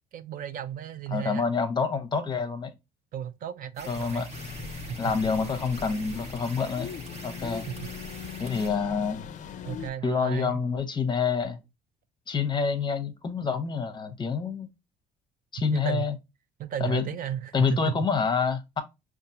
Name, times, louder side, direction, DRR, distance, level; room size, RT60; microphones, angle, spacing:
voice 1, 0.1-1.4 3.1-4.2 4.7-5.1 7.7-7.9 9.6-10.6 15.7-16.0 16.6-18.0, right 9 dB, 55° right, 0.4 m, -34 dB
voice 2, 1.1-2.7 3.9-4.3 5.0-6.9 7.2-7.7 8.4-9.3 10.0-11.6 12.3-14.7 15.5-16.1 16.8-17.1 17.5-18.8, left 5 dB, 25° left, 0.8 m, -27 dB
sound 1, 3.8-8.7, right 2 dB, 40° right, 1.1 m, -44 dB
sound 2, 4.3-9.9, left 7 dB, 50° left, 0.4 m, -40 dB
5.2 x 2.4 x 2.7 m
cardioid pair, 110°, 17 cm